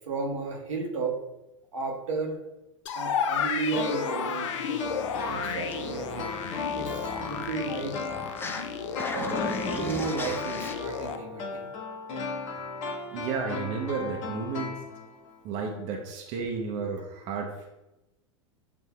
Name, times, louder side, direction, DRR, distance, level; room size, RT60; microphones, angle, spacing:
voice 1, 0.1-1.2 1.7-2.4 2.9-4.9 5.2-8.0 9.1-11.7, right 4 dB, 75° right, -1 dB, 1.0 m, -33 dB
sound 1, 2.9-11.2, left 7 dB, 70° left, 0.5 m, -33 dB
sound 2, 3.7-15.4 15.6-15.7, left 3 dB, 45° left, 1.0 m, -36 dB
sound 3, 4.8-8.7 8.9-10.7, left 4 dB, 15° left, 0.4 m, -38 dB
voice 2, 13.1-14.8 15.4-17.7, right 5 dB, 45° right, 1 dB, 0.7 m, -32 dB
6.9 x 2.6 x 2.2 m, 0.96 s
hypercardioid pair, 95°, 16 cm